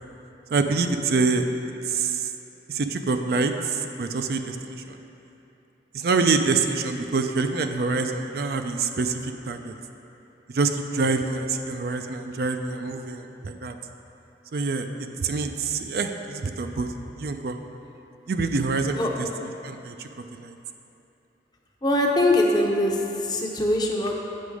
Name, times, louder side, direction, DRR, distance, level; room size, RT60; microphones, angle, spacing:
voice 1, 0.5-1.5 1.8-2.3 2.7-5.0 5.9-9.7 10.5-13.8 14.5-16.9 17.2-17.6 18.3-20.5, right 4 dB, 60° right, 6 dB, 0.4 m, -26 dB
voice 2, 21.8-24.2, left 1 dB, 25° left, 0 dB, 0.7 m, -22 dB
8.4 x 6.1 x 4.8 m, 2.8 s
head